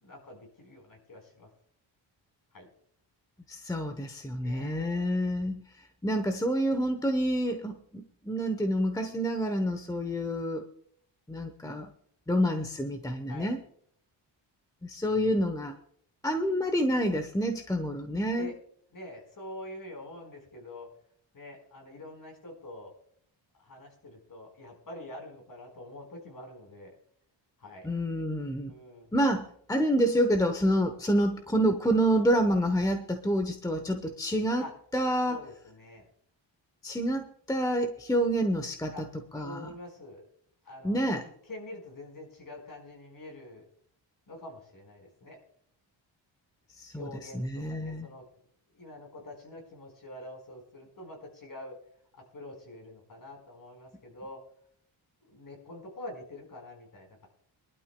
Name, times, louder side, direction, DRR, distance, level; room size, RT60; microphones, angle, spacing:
voice 1, 0.0-1.5 2.5-2.7 4.3-5.2 10.0-10.3 13.3-13.5 18.4-18.5 18.9-20.9 21.3-22.9 23.6-26.9 27.6-27.9 28.7-29.1 34.6-34.7 35.2-36.1 38.9-39.0 39.4-40.2 40.6-43.6 44.3-45.4 46.9-48.2 48.7-51.8 52.1-54.4 55.2-57.3, left 1 dB, 45° left, 2 dB, 4.4 m, -46 dB
voice 2, 3.5-5.6 6.0-10.6 11.3-11.9 12.3-13.6 14.8-15.7 16.2-18.5 27.8-28.7 29.1-34.6 34.9-35.4 36.8-39.1 39.3-39.7 40.8-41.2 46.8-48.1, equal, 10° left, 6 dB, 0.9 m, -28 dB
24.0 x 12.0 x 2.2 m, 0.63 s
wide cardioid pair, 135°, 47 cm